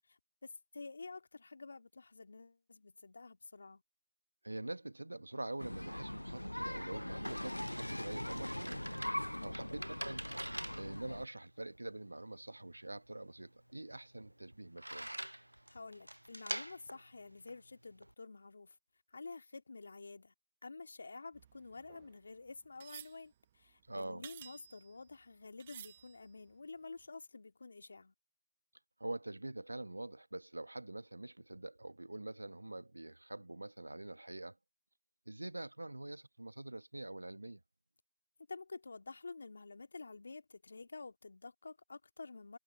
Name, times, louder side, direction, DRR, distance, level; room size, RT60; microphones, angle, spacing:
voice 1, 0.1-3.8 9.3-9.7 15.7-18.8 19.1-20.3 20.6-28.1 38.5-42.6, left 3 dB, 35° left, 2.2 m, -50 dB
voice 2, 4.4-8.8 9.4-15.1 23.9-24.2 29.0-34.6 35.3-37.6, right 2 dB, 60° right, 1.4 m, -45 dB
sound 1, 5.6-11.3, left 1 dB, 90° left, 0.7 m, -41 dB
sound 2, 7.3-18.1, right 1 dB, 90° right, 0.6 m, -47 dB
sound 3, 21.3-25.2 25.6-26.5 27.0-27.1, right 10 dB, 15° right, 0.6 m, -55 dB
figure-of-eight pair, 170°, 0 cm